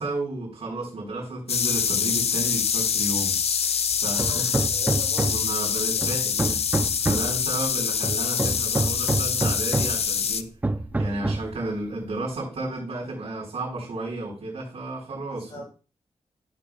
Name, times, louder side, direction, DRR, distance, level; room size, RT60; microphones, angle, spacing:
voice 1, 0.0-4.7 5.3-10.5 11.0-15.6, right 2 dB, 70° right, -10 dB, 4.2 m, -33 dB
sound 1, 1.5-10.4, left 7 dB, 70° left, 0.4 m, -25 dB
voice 2, 4.1-6.0 7.1-7.4 10.9-11.3 15.4-15.6, left 1 dB, 55° left, -7 dB, 5.4 m, -44 dB
Hammer, 4.2-5.6 6.0-7.4 8.0-10.1 10.6-11.6, right 2 dB, 15° right, 0.4 m, -27 dB
13.0 x 6.6 x 2.3 m, 0.35 s
wide cardioid pair, 165°, 11 cm